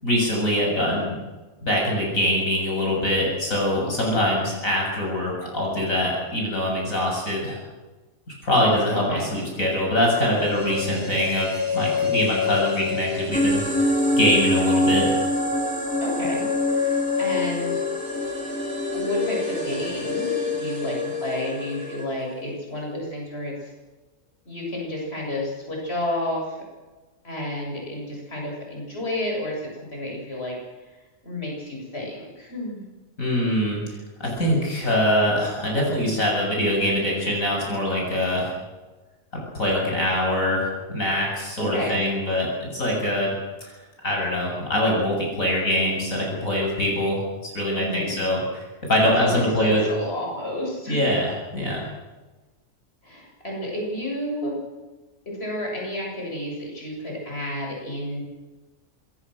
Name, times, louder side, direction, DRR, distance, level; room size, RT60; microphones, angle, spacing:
voice 1, 0.0-1.1 1.6-7.6 8.4-15.1 33.2-33.8 34.2-38.5 39.5-43.3 43.6-43.7 44.0-47.2 47.5-48.6 48.9-49.8 50.9-51.8, left 1 dB, 70° left, -1 dB, 7.9 m, -23 dB
voice 2, 8.9-9.3 16.0-17.8 18.9-23.7 24.5-26.6 27.2-30.5 31.2-32.9 41.6-42.0 47.7-48.2 49.2-51.0 53.0-54.6 55.3-58.2, left 1 dB, 45° left, -1 dB, 7.9 m, -31 dB
sound 1, 10.2-22.3 22.6-22.7, left 5 dB, 15° right, 5.8 m, -29 dB
sound 2, 13.3-22.0, equal, 5° left, 3.3 m, -27 dB
27.0 x 22.5 x 6.5 m, 1.2 s
omnidirectional pair, 1.5 m